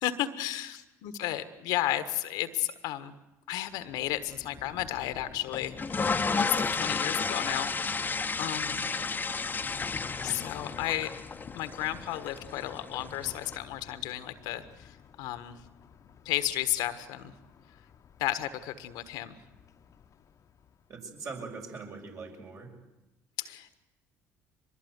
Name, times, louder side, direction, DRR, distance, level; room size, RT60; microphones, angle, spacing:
voice 1, 0.0-3.1 3.5-7.7 8.4-8.9 10.2-11.1 11.5-15.6 16.2-17.3 18.2-19.4 23.4-23.7, left 14 dB, 75° left, 12 dB, 1.4 m, -33 dB
Thunder, 3.7-21.1, left 7 dB, 50° left, 1.2 m, -51 dB
sound 1, 5.5-13.6, left 4 dB, 25° left, 1.1 m, -32 dB
voice 2, 8.8-9.2 20.9-22.7, right 4 dB, 50° right, 1 dB, 6.3 m, -42 dB
23.5 x 21.0 x 8.1 m, 1.0 s
hypercardioid pair, 60°, 7 cm